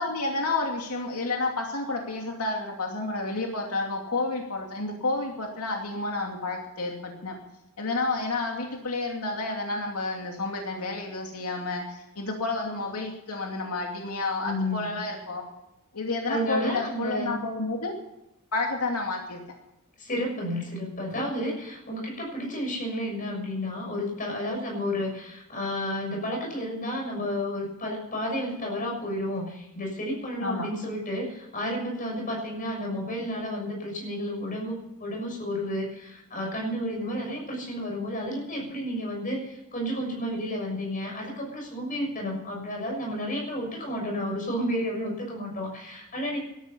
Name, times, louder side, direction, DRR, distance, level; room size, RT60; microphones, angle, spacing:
voice 1, 0.0-7.3 7.8-15.4 15.9-17.9 18.5-19.4 30.4-30.7, left 2 dB, 85° left, 1 dB, 2.6 m, -30 dB
voice 2, 14.4-14.9 16.3-17.3 20.0-46.4, left 1 dB, 35° left, 0 dB, 6.8 m, -31 dB
18.0 x 13.0 x 5.7 m, 0.90 s
head